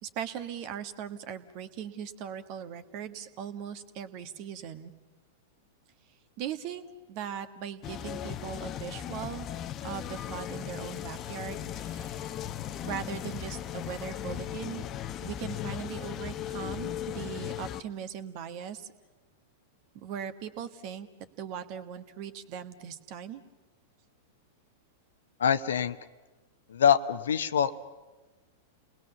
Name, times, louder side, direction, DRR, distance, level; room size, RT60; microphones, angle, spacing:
voice 1, 0.0-4.9 6.4-9.5 9.8-12.3 12.8-14.9 15.2-18.9 19.9-21.1 21.4-23.4, right 8 dB, 45° right, 10 dB, 1.5 m, -39 dB
sound 1, 7.8-17.8, left 10 dB, 35° left, 0.9 m, -37 dB
voice 2, 25.4-26.0 26.7-27.8, left 8 dB, 70° left, 12 dB, 0.9 m, -24 dB
29.5 x 20.0 x 7.0 m, 1.2 s
figure-of-eight pair, 95°, 0 cm